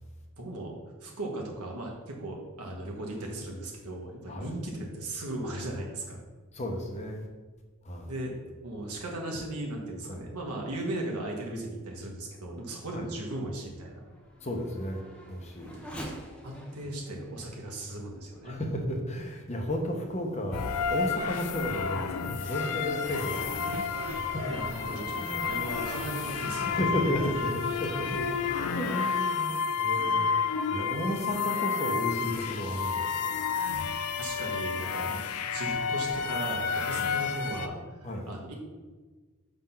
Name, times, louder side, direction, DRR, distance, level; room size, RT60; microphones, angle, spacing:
voice 1, 0.4-0.8 1.0-6.2 8.0-8.3 8.6-14.0 16.4-18.6 24.5-26.8 34.2-38.5, right 1 dB, 90° right, -1 dB, 1.5 m, -37 dB
voice 2, 6.5-7.3 7.8-8.1 10.1-10.2 12.9-13.1 14.4-15.0 15.3-15.8 18.4-23.8 24.2-24.6 25.2-25.5 25.9-26.0 26.6-28.3 28.7-30.3 30.7-33.4 35.0-35.2 36.9-37.1 38.0-38.3, left 1 dB, 30° left, 2 dB, 0.9 m, -33 dB
Race car auto racing / Accelerating revving vroom, 11.8-19.6 20.2-20.3 20.9-25.7, equal, 5° left, 0.7 m, -49 dB
sound 1, 20.5-37.7, left 6 dB, 90° left, 0.5 m, -31 dB
sound 2, 23.0-28.7, right 1 dB, 65° right, 0.7 m, -42 dB
5.8 x 3.8 x 5.7 m, 1.3 s
head